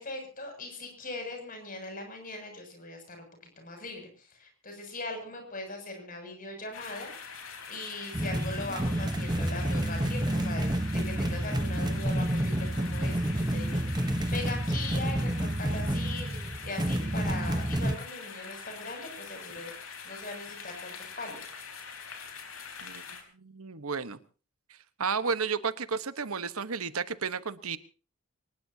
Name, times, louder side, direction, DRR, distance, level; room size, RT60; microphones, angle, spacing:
voice 1, 0.0-3.3 3.6-7.4 7.7-13.8 14.3-19.7 20.0-21.5, left 2 dB, 40° left, 4 dB, 7.1 m, -40 dB
sound 1, 6.7-23.2, left 6 dB, 70° left, 4.3 m, -44 dB
sound 2, 8.1-18.0, right 1 dB, 20° right, 1.0 m, -29 dB
voice 2, 23.3-24.2 25.0-27.8, right 5 dB, 80° right, 13 dB, 1.2 m, -32 dB
24.5 x 20.0 x 2.8 m, 0.36 s
head